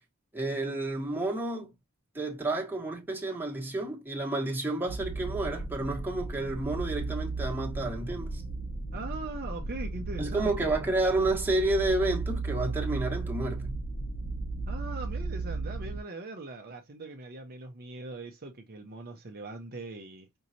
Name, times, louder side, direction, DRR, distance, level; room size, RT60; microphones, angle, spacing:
voice 1, 0.3-1.7 2.1-8.4 10.2-13.7, right 2 dB, 10° right, 1.5 m, -30 dB
sound 1, 4.9-16.0, right 3 dB, 40° left, 0.9 m, -35 dB
voice 2, 8.9-10.7 14.7-20.3, right 2 dB, 45° right, 0.7 m, -41 dB
5.4 x 2.9 x 2.7 m
head